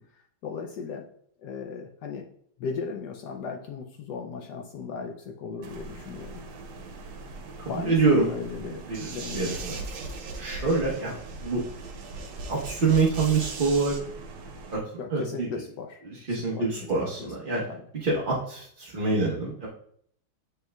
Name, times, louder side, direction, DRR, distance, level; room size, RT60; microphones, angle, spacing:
voice 1, 0.1-1.1 1.4-2.3 2.6-6.5 7.7-8.8 9.1-9.6 15.0-16.7 17.0-17.3 17.7-17.9, left 5 dB, 75° left, 3 dB, 0.9 m, -37 dB
sound 1, 5.6-14.8, right 3 dB, 85° right, 1.7 m, -43 dB
voice 2, 7.6-8.3 8.9-9.8 10.4-11.1 11.4-11.6 12.5-14.0 14.7-14.8 15.1-15.5 16.1-17.6 18.0-19.7, right 3 dB, 50° right, -4 dB, 0.6 m, -26 dB
sound 2, 8.9-14.0, right 3 dB, 70° right, 1.7 m, -39 dB
7.7 x 5.5 x 2.2 m, 0.65 s
omnidirectional pair, 2.3 m